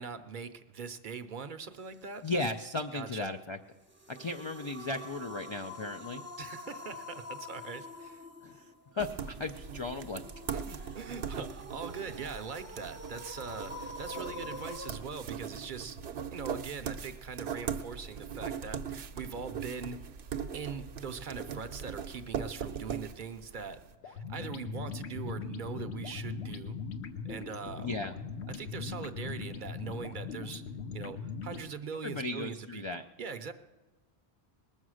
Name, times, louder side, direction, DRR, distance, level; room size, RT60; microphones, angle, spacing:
voice 1, 0.0-2.3 2.9-3.3 6.4-8.3 10.5-16.0 16.3-20.0 20.5-23.8 24.0-26.8 27.2-27.9 28.5-30.6 30.9-32.8 33.2-33.5, right 5 dB, 55° right, 9 dB, 0.7 m, -41 dB
voice 2, 2.2-3.6 4.1-6.2 8.4-8.6 8.9-10.2 27.8-28.1 32.0-33.0, left 2 dB, 50° left, 6 dB, 0.3 m, -35 dB
sound 1, 3.9-14.9, left 2 dB, 10° right, 0.6 m, -46 dB
sound 2, 9.0-23.8, right 7 dB, 75° right, 0.9 m, -40 dB
sound 3, 24.0-31.7, left 5 dB, 75° left, 1.0 m, -40 dB
20.0 x 7.3 x 6.3 m, 1.2 s
omnidirectional pair, 1.1 m